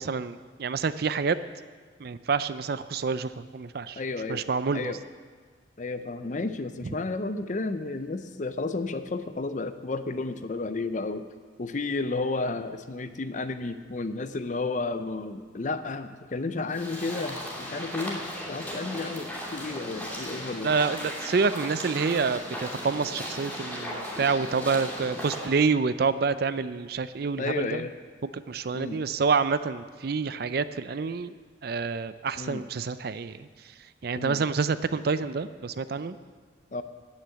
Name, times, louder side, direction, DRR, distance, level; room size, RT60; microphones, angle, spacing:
voice 1, 0.0-1.4 2.0-4.0 4.3-5.0 20.6-27.8 28.5-31.3 31.6-33.5 34.0-36.2, right 5 dB, 55° right, 14 dB, 0.4 m, -28 dB
voice 2, 4.0-5.0 5.8-11.3 11.6-20.7 27.4-27.9 28.7-29.0 32.4-32.7 34.2-34.4 36.7-36.8, left 3 dB, 40° left, 10 dB, 0.6 m, -32 dB
sound 1, 16.7-25.5, equal, 10° left, 2.6 m, -36 dB
9.8 x 9.7 x 7.8 m, 1.5 s
head